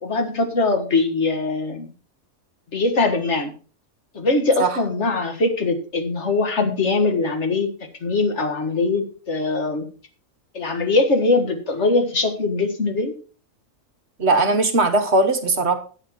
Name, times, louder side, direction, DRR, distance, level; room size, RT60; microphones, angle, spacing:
voice 1, 0.0-1.9 2.7-3.5 4.1-7.7 8.0-9.9 10.5-13.2, left 3 dB, 55° left, 6 dB, 2.0 m, -21 dB
voice 2, 14.2-15.8, right 2 dB, 55° right, 6 dB, 1.6 m, -19 dB
11.5 x 8.2 x 4.4 m, 0.38 s
omnidirectional pair, 1.4 m